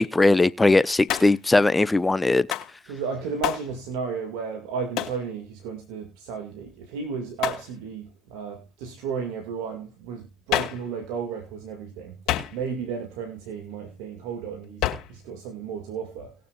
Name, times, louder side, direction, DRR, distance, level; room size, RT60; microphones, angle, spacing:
voice 1, 0.0-2.5, left 2 dB, 15° left, 0.6 m, -19 dB
Hands, 1.1-1.5 2.5-2.7 3.4-3.7 5.0-5.2 7.4-7.7 10.5-10.9 12.3-12.8 14.8-15.2, left 13 dB, 65° left, 2.3 m, -28 dB
voice 2, 2.9-12.2 12.5-16.3, right 6 dB, 80° right, 2.0 m, -33 dB
19.5 x 6.8 x 2.4 m
supercardioid pair, 75°, 0 cm